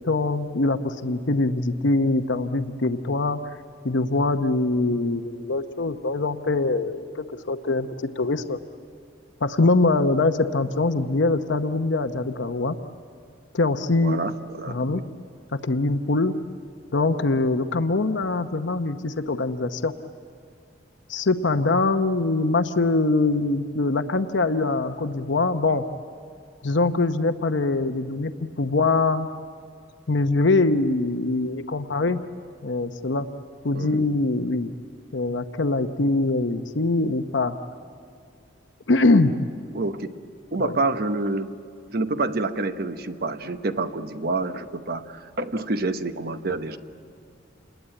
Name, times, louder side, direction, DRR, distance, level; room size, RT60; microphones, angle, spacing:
voice 1, 0.0-3.4 3.8-7.9 8.2-8.6 9.4-12.8 13.5-14.2 14.7-15.0 15.5-16.4 16.9-19.9 21.1-25.8 26.6-28.3 28.6-29.3 30.1-32.2 32.6-33.3 33.6-34.7 35.1-37.5 38.9-39.3 40.6-40.8, left 3 dB, 75° left, 8 dB, 0.8 m, -23 dB
voice 2, 14.0-15.0 33.7-34.0 39.7-40.1 40.5-41.5 41.9-46.8, right 2 dB, 55° right, 9 dB, 1.0 m, -28 dB
28.0 x 21.0 x 8.9 m, 2.3 s
head